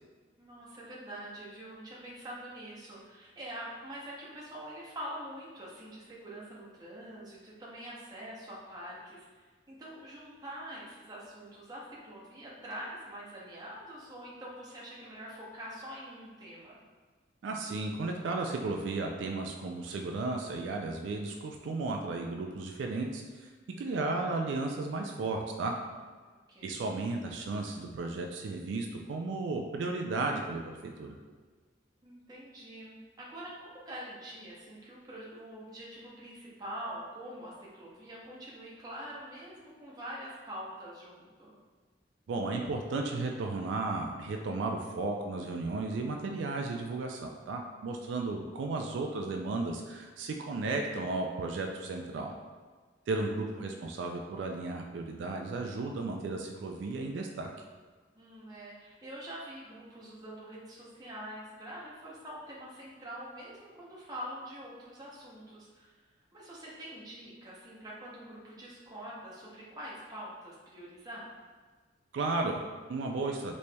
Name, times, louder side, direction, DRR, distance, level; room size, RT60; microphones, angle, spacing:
voice 1, 0.4-16.8 26.5-26.8 32.0-41.6 53.1-53.2 58.1-66.0 66.3-71.4, equal, 20° right, -6 dB, 0.7 m, -45 dB
voice 2, 17.4-23.5 23.8-25.7 26.6-31.2 42.3-52.3 53.1-57.5 72.1-73.6, right 3 dB, 75° right, 2 dB, 0.3 m, -34 dB
4.0 x 3.1 x 2.2 m, 1.4 s
head